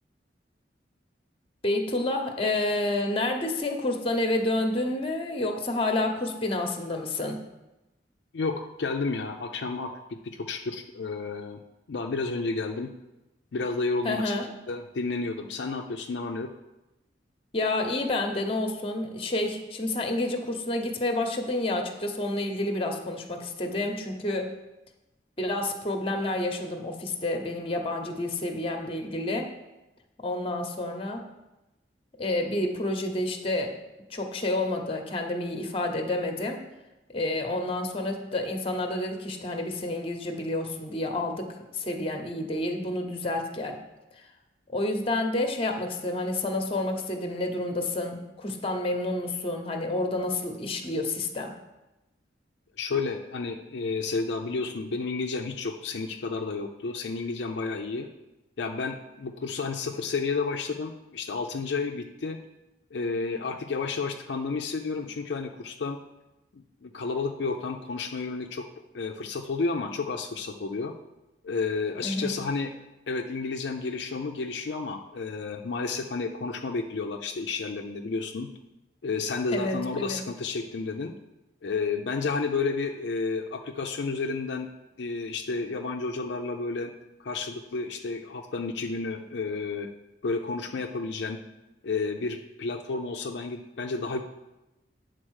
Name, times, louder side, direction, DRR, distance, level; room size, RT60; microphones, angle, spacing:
voice 1, 1.6-7.4 14.0-14.4 17.5-24.5 25.4-29.5 30.2-31.2 32.2-33.8 34.1-36.6 37.1-43.8 44.7-51.5 72.0-72.3 79.5-80.2, left 2 dB, 30° left, 4 dB, 0.9 m, -29 dB
voice 2, 8.3-11.6 11.9-12.9 13.5-14.3 14.7-16.5 52.8-58.1 58.6-62.4 62.9-66.0 66.5-68.6 68.9-70.9 71.4-72.7 73.1-78.5 79.0-81.1 81.6-84.7 85.0-86.9 87.2-89.9 90.2-91.4 91.8-94.2, left 4 dB, 70° left, 3 dB, 0.5 m, -31 dB
8.8 x 4.0 x 6.3 m, 0.99 s
head